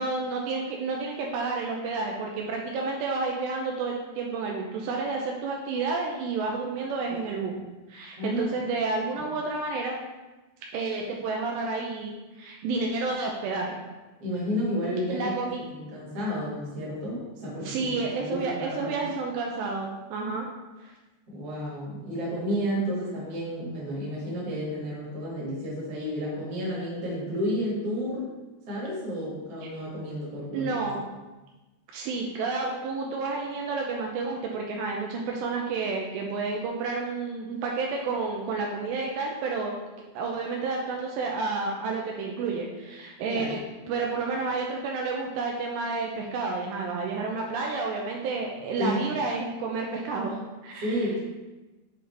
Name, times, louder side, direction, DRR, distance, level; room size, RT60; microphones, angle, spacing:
voice 1, 0.0-7.5 7.9-9.9 10.7-13.8 15.1-15.6 17.6-20.5 20.8-20.9 29.6-29.7 30.5-31.1 31.9-39.8 40.1-43.6 43.9-51.2, right 4 dB, 80° right, 0 dB, 2.7 m, -30 dB
voice 2, 14.2-15.3 15.7-18.0 18.2-19.1 21.3-28.3 28.7-30.7 43.3-43.5 48.8-49.0 50.8-51.2, equal, 50° right, -6 dB, 2.0 m, -31 dB
7.7 x 3.8 x 3.3 m, 1.1 s
omnidirectional pair, 5.2 m